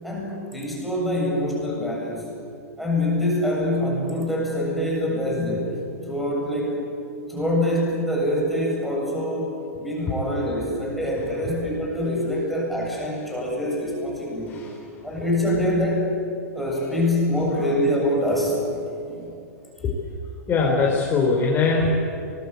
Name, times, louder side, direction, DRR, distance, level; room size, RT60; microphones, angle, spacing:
voice 1, 0.0-2.3 2.8-5.7 6.1-6.8 7.3-14.6 15.0-16.1 16.5-18.8 19.1-19.3, left 1 dB, ahead, -3 dB, 7.8 m, -25 dB
voice 2, 11.2-11.5 14.5-15.2 16.7-17.1 17.5-17.7 19.8-19.9 20.5-22.0, left 4 dB, 25° left, -1 dB, 4.4 m, -23 dB
24.0 x 21.0 x 8.5 m, 2.8 s
hypercardioid pair, 110°, 9 cm